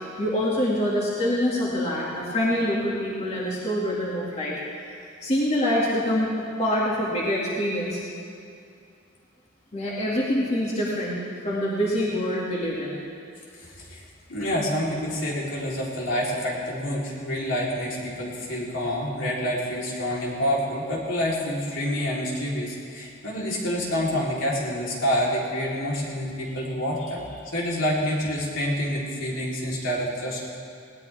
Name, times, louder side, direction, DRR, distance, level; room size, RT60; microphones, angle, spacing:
voice 1, 0.0-4.9 5.2-6.3 6.6-8.0 9.7-11.2 11.4-13.0, equal, 35° left, -6 dB, 2.4 m, -25 dB
voice 2, 13.6-14.0 14.3-27.2 27.5-30.6, equal, 70° left, -5 dB, 3.8 m, -27 dB
20.0 x 18.5 x 3.6 m, 2.4 s
head